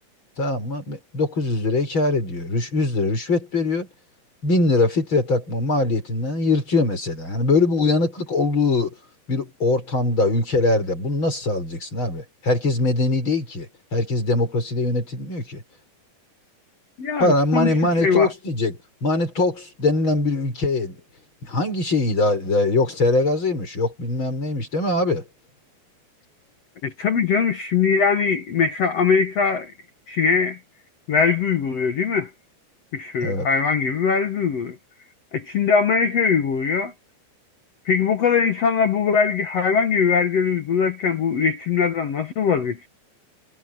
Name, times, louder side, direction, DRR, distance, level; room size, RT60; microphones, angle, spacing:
voice 1, 0.4-3.9 4.4-8.9 9.3-15.6 17.2-18.7 19.0-21.0 21.4-25.2 33.2-33.5, left 2 dB, 25° left, 7.0 m, -22 dB
voice 2, 17.0-18.3 26.8-29.7 30.1-30.6 31.1-32.3 32.9-34.8 35.3-36.9 37.8-42.9, left 6 dB, 85° left, 1.4 m, -21 dB
omnidirectional pair, 5.3 m